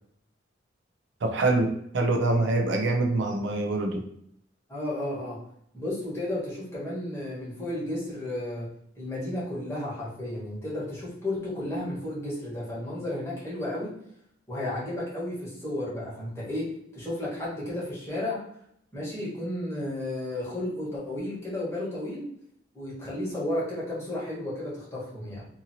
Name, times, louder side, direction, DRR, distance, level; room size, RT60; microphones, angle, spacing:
voice 1, 1.2-4.1, right 2 dB, 70° right, 0.4 m, -25 dB
voice 2, 4.7-5.4 5.7-8.7 9.0-13.9 14.5-18.4 18.9-22.2 22.7-25.5, left 1 dB, 15° left, 1.1 m, -33 dB
2.7 x 2.6 x 2.6 m
head